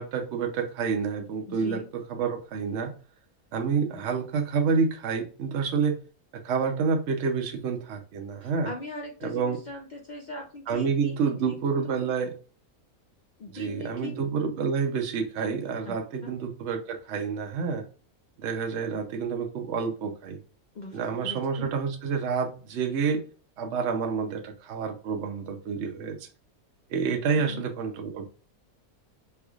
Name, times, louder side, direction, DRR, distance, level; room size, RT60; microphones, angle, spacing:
voice 1, 0.0-2.9 3.5-5.9 6.3-8.7 9.2-9.6 10.7-12.3 13.5-17.8 18.4-20.4 20.9-23.2 23.6-26.2 26.9-28.3, right 5 dB, 60° right, 4 dB, 0.9 m, -28 dB
voice 2, 1.5-1.9 8.4-11.7 13.4-14.1 15.8-16.0 16.2-16.3 20.7-21.0 21.2-21.7 27.4-27.6, left 2 dB, 80° left, 0 dB, 0.4 m, -40 dB
3.4 x 3.1 x 2.3 m, 0.36 s
omnidirectional pair, 1.5 m